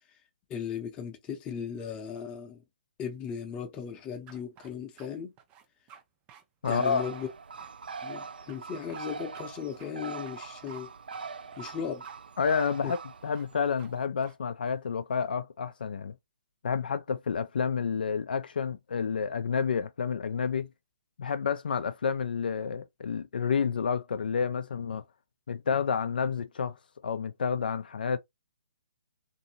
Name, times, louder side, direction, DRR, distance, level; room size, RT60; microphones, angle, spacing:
voice 1, 0.5-2.6 3.0-5.3 6.7-7.3 8.0-10.9 11.6-12.0 12.8-12.9, left 7 dB, 20° left, 0.7 m, -37 dB
sound 1, 4.3-5.1 5.4-6.0 6.3-6.4 6.7-6.9 7.1-8.2 8.5-8.6 8.9-9.0 9.3-9.4 9.8-9.9 10.2-10.8 11.1-11.2 11.5-12.2 12.4-12.6 12.9-13.0 13.3-13.5 13.8-13.9 14.2-14.3 14.6-15.3, right 8 dB, 20° right, 0.4 m, -54 dB
voice 2, 6.6-7.0 12.4-13.0 13.2-16.1 16.6-20.7 21.2-25.0 25.5-26.8 27.0-28.2, left 6 dB, 70° left, 0.3 m, -29 dB
Bird, 6.6-14.0, right 5 dB, 75° right, 0.4 m, -42 dB
2.7 x 2.7 x 2.7 m
hypercardioid pair, 140°, 5 cm